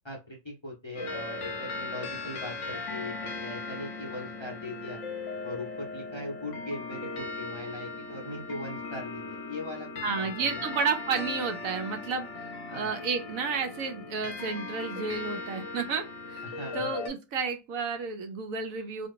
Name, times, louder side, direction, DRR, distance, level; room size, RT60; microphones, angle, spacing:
voice 1, 0.0-5.0 5.4-9.9 10.2-10.7 12.7-12.9 16.4-16.9, left 1 dB, 25° left, -1 dB, 0.7 m, -40 dB
sound 1, 1.0-17.1, left 3 dB, 65° left, 1.0 m, -38 dB
voice 2, 10.0-16.5 16.7-19.1, right 5 dB, 80° right, 5 dB, 1.1 m, -31 dB
2.8 x 2.8 x 2.6 m, 0.26 s
omnidirectional pair, 1.4 m